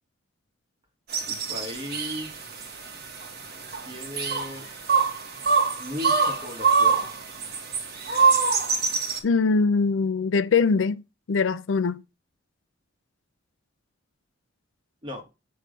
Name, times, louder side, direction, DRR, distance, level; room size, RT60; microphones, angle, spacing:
sound 1, 1.1-9.2, right 5 dB, 55° right, 1.3 m, -25 dB
voice 1, 1.3-2.7 3.8-4.7 5.8-7.1 15.0-15.2, left 1 dB, 25° right, 1.5 m, -37 dB
voice 2, 9.2-11.0 11.3-12.0, left 4 dB, 80° left, 0.5 m, -22 dB
6.9 x 3.2 x 5.1 m
head